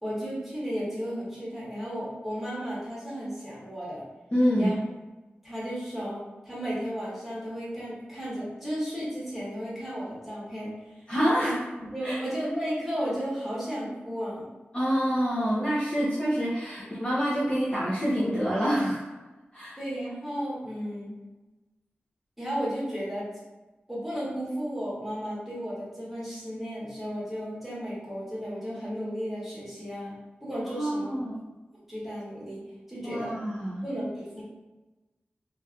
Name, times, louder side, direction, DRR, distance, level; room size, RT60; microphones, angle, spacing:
voice 1, 0.0-4.0 4.5-4.8 5.4-11.1 11.4-14.5 16.0-16.1 19.7-21.2 22.4-23.3 23.9-30.1 30.4-31.2 31.9-33.3 33.8-34.4, equal, 5° right, -8 dB, 1.4 m, -34 dB
voice 2, 4.3-4.7 11.1-11.6 12.0-12.2 14.7-19.1 19.5-19.8 30.7-31.4 33.1-33.8, equal, 25° left, -8 dB, 0.7 m, -26 dB
3.1 x 2.7 x 2.4 m, 1.2 s
wide cardioid pair, 80°, 4 cm